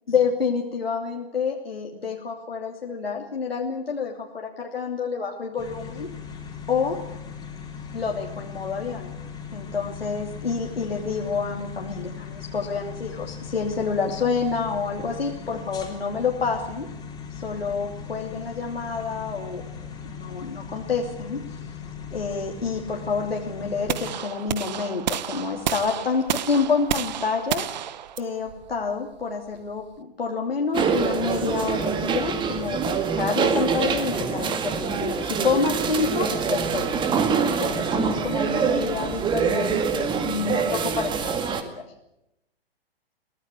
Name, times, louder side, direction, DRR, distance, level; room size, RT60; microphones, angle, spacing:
voice 1, 0.1-6.1 6.7-7.0 7.9-9.1 9.5-16.9 17.3-21.4 22.1-27.7 28.2-36.8 37.6-41.8, left 5 dB, 75° left, -1 dB, 3.1 m, -28 dB
sound 1, 5.6-24.1, left 6 dB, 15° left, 3.7 m, -38 dB
sound 2, 23.9-30.0, right 10 dB, 45° right, 1.2 m, -31 dB
sound 3, 30.7-41.6, right 6 dB, 15° right, 1.9 m, -25 dB
23.0 x 17.5 x 8.3 m, 0.87 s
figure-of-eight pair, 120°, 30 cm